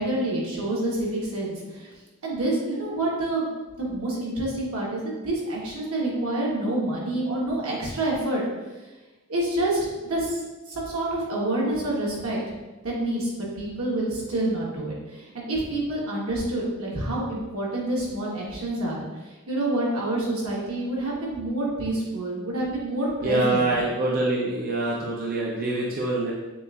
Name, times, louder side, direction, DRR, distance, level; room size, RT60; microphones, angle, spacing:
voice 1, 0.0-1.9 2.2-3.5 3.8-8.4 9.3-10.4 10.7-12.4 12.8-19.0 19.5-23.7, right 1 dB, 85° right, -4 dB, 1.2 m, -27 dB
voice 2, 23.2-26.3, right 2 dB, 45° right, -4 dB, 0.5 m, -25 dB
6.7 x 2.5 x 2.4 m, 1.2 s
head